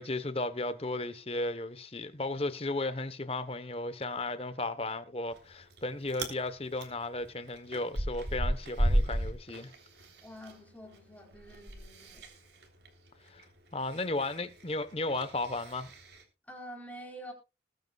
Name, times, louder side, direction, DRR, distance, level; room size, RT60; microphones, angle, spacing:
voice 1, 0.0-9.7 13.3-13.4 13.7-15.9, left 2 dB, 30° left, 1.1 m, -35 dB
Chewing mastication, 5.3-5.8 6.1-6.4 6.8-10.5 10.8-16.2, right 1 dB, 65° right, 3.6 m, -34 dB
voice 2, 10.2-12.3 16.4-17.3, equal, 10° left, 4.1 m, -47 dB
21.0 x 9.5 x 2.4 m
head